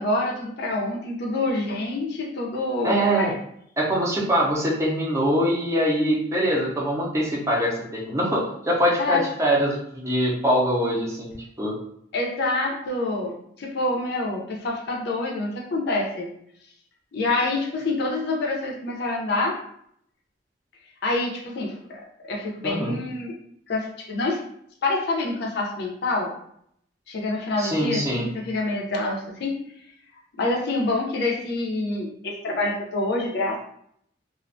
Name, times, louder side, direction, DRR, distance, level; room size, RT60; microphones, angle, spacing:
voice 1, 0.0-3.3 9.0-9.2 12.1-16.3 17.1-19.6 21.0-22.0 22.3-23.3 23.7-24.4 24.8-26.3 27.1-29.6 30.4-33.6, left 2 dB, 65° left, -1 dB, 0.5 m, -26 dB
voice 2, 2.8-3.3 3.8-11.8 22.6-23.0 27.6-28.3, equal, 15° right, -3 dB, 0.5 m, -23 dB
2.4 x 2.1 x 2.5 m, 0.70 s
head